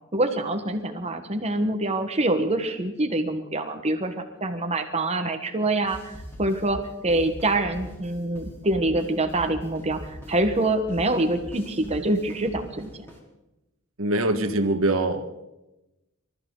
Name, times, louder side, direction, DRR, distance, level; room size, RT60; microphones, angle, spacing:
voice 1, 0.1-13.1, right 2 dB, 30° right, 7 dB, 1.4 m, -25 dB
sound 1, 5.8-13.2, equal, 10° left, 3.9 m, -42 dB
voice 2, 14.0-15.4, right 2 dB, 85° right, 7 dB, 1.7 m, -24 dB
26.0 x 14.0 x 4.0 m, 0.95 s
head